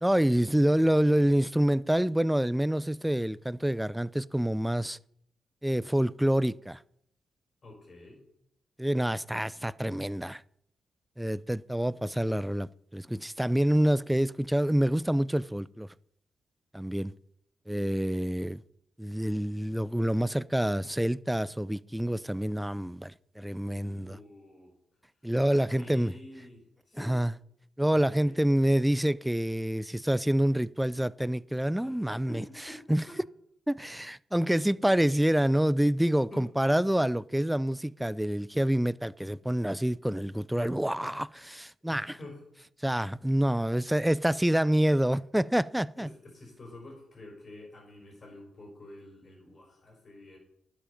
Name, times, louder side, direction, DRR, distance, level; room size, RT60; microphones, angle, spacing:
voice 1, 0.0-5.0 5.6-6.8 8.8-10.4 11.2-15.9 16.7-17.1 17.7-18.6 19.0-24.2 25.2-26.1 27.0-27.3 27.8-32.4 32.9-33.0 33.7-42.2 42.8-46.1, right 1 dB, 5° right, 0.4 m, -27 dB
voice 2, 7.6-8.2 23.7-24.7 25.7-27.1 27.9-28.3 31.8-32.8 33.1-33.2 36.3-36.4 41.8-42.4 43.3-43.6 46.0-50.4, left 1 dB, 45° left, 4.9 m, -49 dB
11.5 x 7.6 x 5.2 m
cardioid pair, 65°, 0 cm